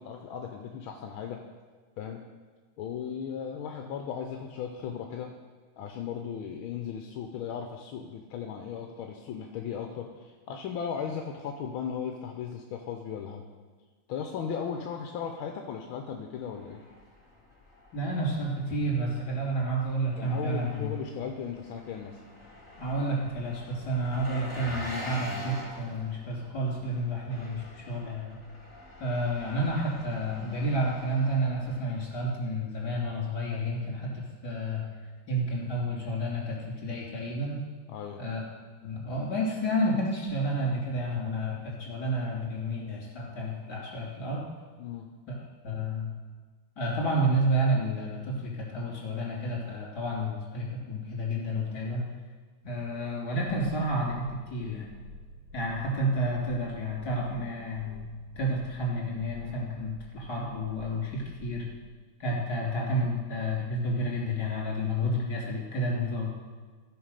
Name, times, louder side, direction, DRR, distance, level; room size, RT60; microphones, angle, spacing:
voice 1, 0.0-1.4 2.0-2.2 2.8-5.3 5.8-13.4 14.1-16.8 20.2-22.2 37.9-38.2 44.8-45.1 62.5-62.6, left 7 dB, 80° left, 3 dB, 1.6 m, -36 dB
Engine, 16.4-32.2, left 1 dB, 5° right, 4.2 m, -45 dB
voice 2, 17.9-21.0 22.8-28.4 29.0-34.9 35.3-37.6 38.2-38.4 38.8-44.4 45.3-45.4 45.6-46.1 46.8-52.1 52.6-54.9 55.5-58.1 58.4-61.7 62.2-66.3, right 1 dB, 50° left, -4 dB, 3.8 m, -30 dB
sound 1, 54.8-61.8, equal, 70° right, 3.4 m, -49 dB
15.0 x 5.3 x 6.6 m, 1.4 s
omnidirectional pair, 2.3 m